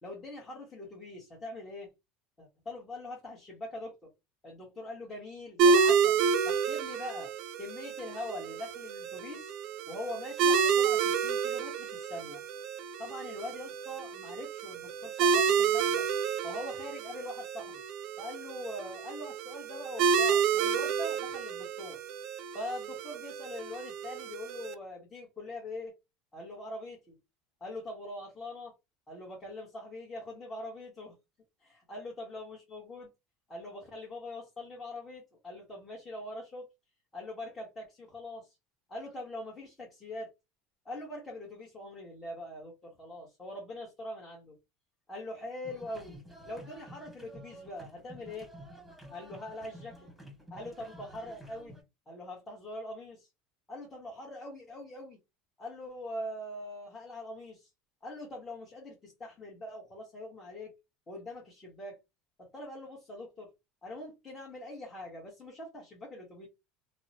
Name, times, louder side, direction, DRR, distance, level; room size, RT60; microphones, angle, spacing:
voice 1, 0.0-1.9 2.4-4.1 4.4-6.2 6.4-7.3 7.6-9.6 9.9-12.4 13.0-16.0 16.4-17.8 18.2-22.0 22.5-25.9 26.3-27.2 27.6-28.7 29.1-31.1 31.9-33.1 33.5-36.7 37.1-38.5 38.9-40.3 40.8-44.6 45.1-46.2 46.5-48.5 49.1-50.1 50.5-51.7 52.1-53.3 53.7-55.2 55.6-57.7 58.0-60.7 61.1-62.0 62.5-63.5 63.8-66.5, left 1 dB, 25° left, 1.1 m, -42 dB
sound 1, 5.6-24.7, right 6 dB, 60° right, 0.4 m, -30 dB
sound 2, 45.6-51.8, equal, 5° left, 1.5 m, -50 dB
2.7 x 2.1 x 2.7 m
supercardioid pair, 105°, 0 cm